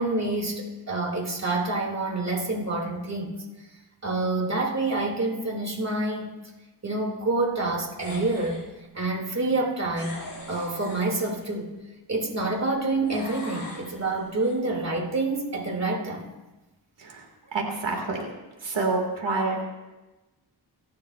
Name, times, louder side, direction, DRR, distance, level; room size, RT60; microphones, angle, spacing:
voice 1, 0.0-3.4 4.0-6.4 6.8-8.6 8.9-10.2 10.5-11.7 12.1-16.3 17.8-17.9, right 2 dB, 35° right, 0 dB, 2.5 m, -27 dB
sound 1, 8.0-8.7 9.9-11.6 13.1-14.5, left 1 dB, 55° left, 6.0 m, -41 dB
voice 2, 17.0-18.3 18.6-19.6, right 3 dB, 85° right, 1 dB, 2.2 m, -28 dB
29.5 x 11.0 x 2.4 m, 1.1 s
wide cardioid pair, 65°, 43 cm